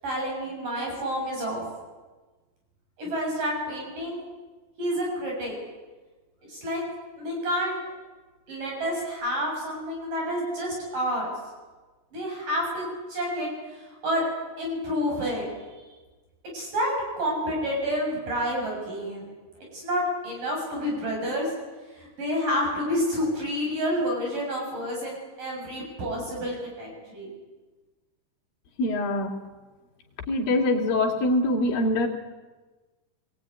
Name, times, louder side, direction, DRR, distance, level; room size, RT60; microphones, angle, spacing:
voice 1, 0.0-1.7 3.0-4.2 4.8-5.5 6.5-6.8 7.2-7.8 8.5-11.3 12.1-14.3 14.6-15.5 16.5-19.3 19.7-21.5 21.9-27.3, equal, 55° right, -1 dB, 8.6 m, -29 dB
voice 2, 28.8-29.3 30.3-32.1, left 1 dB, 65° left, 1 dB, 4.5 m, -24 dB
25.5 x 21.0 x 9.7 m, 1.3 s
omnidirectional pair, 4.5 m